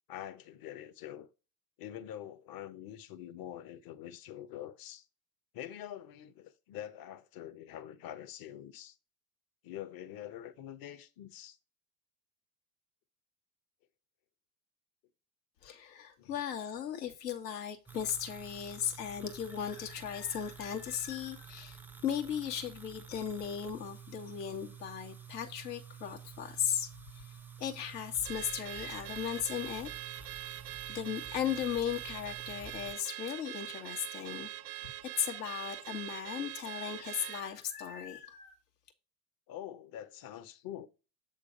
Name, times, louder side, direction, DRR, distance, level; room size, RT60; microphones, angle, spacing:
voice 1, 0.1-1.3 1.8-5.0 5.5-9.0 9.6-11.6 16.2-16.4 39.5-40.9, left 11 dB, 45° left, 1.1 m, -45 dB
voice 2, 15.6-26.9 27.1-27.2 27.6-29.9 30.9-34.9 35.2-38.6, left 8 dB, 80° left, 1.8 m, -37 dB
sound 1, 17.9-33.0, right 6 dB, 5° right, 0.5 m, -50 dB
Car / Alarm, 28.2-37.5, right 17 dB, 70° right, 0.9 m, -43 dB
8.2 x 3.8 x 5.3 m
hypercardioid pair, 75°, 48 cm